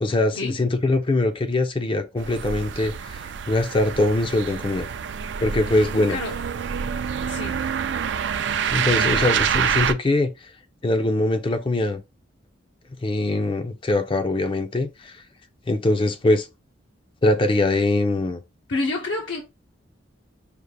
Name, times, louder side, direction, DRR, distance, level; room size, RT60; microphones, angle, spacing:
voice 1, 0.0-4.9 5.4-6.2 8.7-10.3 10.8-12.0 13.0-15.2 15.7-16.5 17.2-18.4, left 2 dB, 25° left, 0.4 m, -22 dB
sound 1, 2.2-9.9, right 7 dB, 65° right, 0.4 m, -26 dB
voice 2, 5.7-6.4 7.3-7.6 18.7-19.4, left 2 dB, 75° left, 0.7 m, -29 dB
5.0 x 2.4 x 3.3 m
head